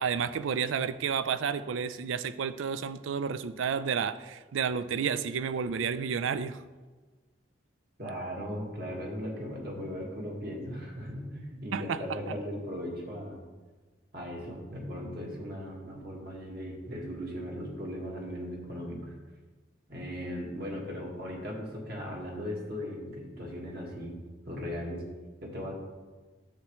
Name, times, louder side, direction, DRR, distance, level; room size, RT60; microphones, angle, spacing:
voice 1, 0.0-6.6 11.7-12.0, right 6 dB, 85° right, 14 dB, 0.4 m, -31 dB
voice 2, 8.0-13.4 14.1-19.1 19.9-24.2 24.5-25.0 25.4-25.7, equal, 50° right, -1 dB, 1.7 m, -38 dB
10.0 x 7.2 x 3.1 m, 1.3 s
head